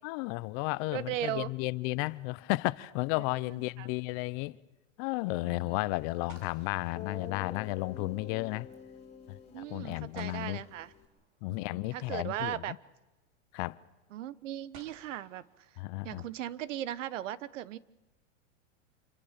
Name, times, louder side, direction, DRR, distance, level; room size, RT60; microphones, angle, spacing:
voice 1, 0.0-4.6 5.0-8.7 9.3-10.6 11.4-12.8 13.5-13.8 15.8-16.2, left 21 dB, 45° left, 0.8 m, -33 dB
sound 1, 0.8-1.7 5.7-5.8 6.3-8.0 10.2-11.7 13.1-13.2 14.7-16.4, right 4 dB, 60° right, 6.0 m, -58 dB
voice 2, 0.9-1.5 3.5-3.9 5.4-5.9 9.5-10.9 11.5-12.8 14.1-15.4 16.0-17.8, right 12 dB, 80° right, 1.2 m, -38 dB
Guitar, 6.4-6.5 6.9-11.1, left 7 dB, 15° left, 5.0 m, -47 dB
27.0 x 23.0 x 6.7 m
supercardioid pair, 140°, 37 cm